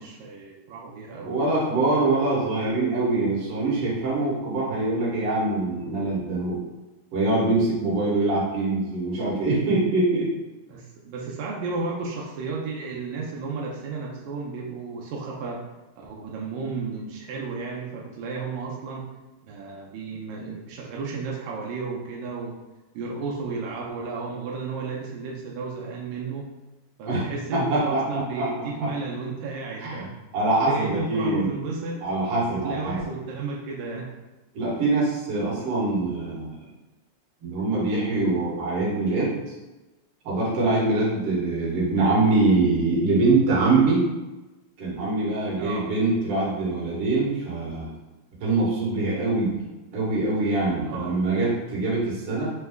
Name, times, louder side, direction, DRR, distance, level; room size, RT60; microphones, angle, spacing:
voice 1, 0.0-1.3 10.7-15.6 16.0-19.1 19.4-22.6 22.9-26.5 27.0-30.1 30.7-32.0 32.5-34.1 45.6-45.9 50.8-51.2, right 4 dB, 90° right, -2 dB, 2.0 m, -33 dB
voice 2, 1.2-6.6 7.1-10.3 27.1-27.3 27.5-28.5 28.8-28.9 29.8-30.1 30.3-31.5 32.0-33.0 34.5-36.6 37.4-39.4 40.2-44.1 44.8-47.9 48.4-49.6 49.9-52.5, right 2 dB, 60° right, -6 dB, 2.0 m, -24 dB
5.4 x 2.2 x 3.4 m, 1.1 s
omnidirectional pair, 3.3 m